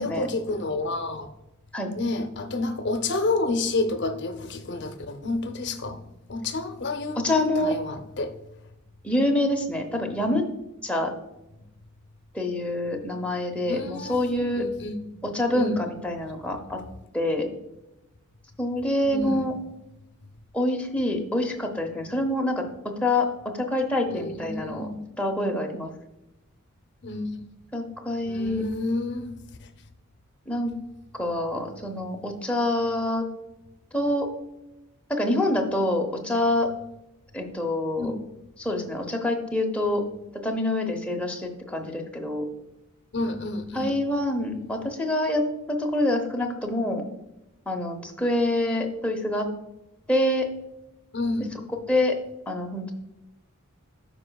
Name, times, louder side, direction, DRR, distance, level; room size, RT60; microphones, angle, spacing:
voice 1, 0.0-1.3 1.9-6.0 6.3-8.4 13.7-15.0 15.5-15.8 19.0-19.6 24.1-25.0 27.0-27.4 28.2-29.7 38.0-38.2 43.1-44.0 51.1-51.5, left 2 dB, 50° left, 0.7 m, -30 dB
voice 2, 7.2-7.8 9.0-10.4 10.8-11.1 12.3-14.6 15.2-16.8 17.1-17.5 18.6-19.5 20.5-24.9 25.2-25.9 27.7-28.6 30.5-30.7 31.1-33.3 33.9-34.3 35.1-36.7 37.3-38.1 38.6-40.0 40.3-42.5 43.7-47.0 47.7-49.5 50.1-50.5 51.9-52.2 52.5-52.9, left 1 dB, 5° left, 0.8 m, -26 dB
13.0 x 4.9 x 2.3 m
head